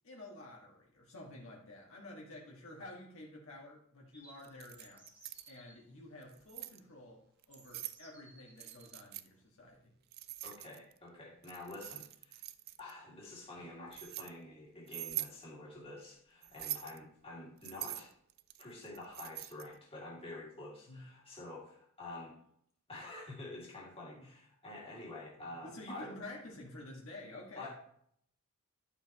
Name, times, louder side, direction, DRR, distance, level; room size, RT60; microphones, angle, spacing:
voice 1, 0.0-5.1 5.5-9.9 20.9-21.0 24.2-24.3 25.4-27.7, left 1 dB, 65° left, -3 dB, 1.8 m, -50 dB
sound 1, 4.1-5.8 6.8-6.9 7.5-9.0, right 1 dB, 5° right, 1.6 m, -61 dB
Keys jangling, 4.4-5.5 6.2-6.8 7.4-8.0 8.6-9.3 10.1-11.0 11.4-12.9 13.6-14.3 14.9-15.4 16.4-17.0 17.6-19.7, right 16 dB, 45° right, 0.4 m, -43 dB
voice 2, 10.4-12.4 12.8-18.1 18.6-22.4 22.9-26.1 27.5-27.7, left 2 dB, 25° left, -4 dB, 2.3 m, -48 dB
11.5 x 6.8 x 3.0 m, 0.67 s
head